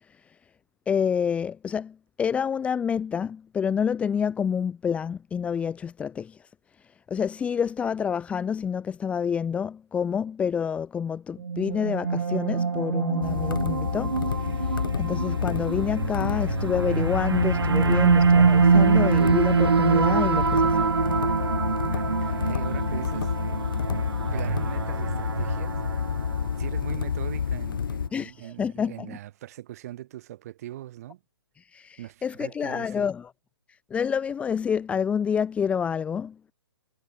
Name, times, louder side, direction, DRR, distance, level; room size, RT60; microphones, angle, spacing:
voice 1, 0.1-0.4 0.9-6.5 6.8-20.9 28.1-29.2 31.6-33.3 33.9-36.4, left 7 dB, 10° left, 1.1 m, -28 dB
sound 1, 11.4-26.7, right 5 dB, 70° right, 0.4 m, -24 dB
Fingers wrapping on table, 13.2-28.1, left 7 dB, 55° left, 1.1 m, -29 dB
voice 2, 21.9-23.3 24.3-25.8 26.6-31.2 32.0-33.1, right 13 dB, 35° right, 3.6 m, -41 dB
figure-of-eight pair, 130°, 14 cm